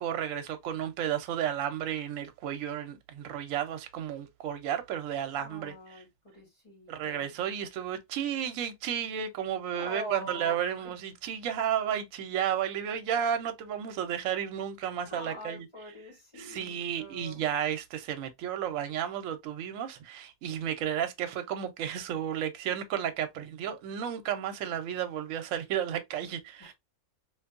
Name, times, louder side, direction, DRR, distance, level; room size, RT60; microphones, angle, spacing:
voice 1, 0.0-5.7 6.9-15.7 16.4-26.7, right 9 dB, 70° right, 0.9 m, -32 dB
voice 2, 5.3-7.3 9.7-11.0 15.1-17.5 26.6-26.7, equal, 20° left, 1.5 m, -43 dB
2.6 x 2.5 x 2.4 m
omnidirectional pair, 1.5 m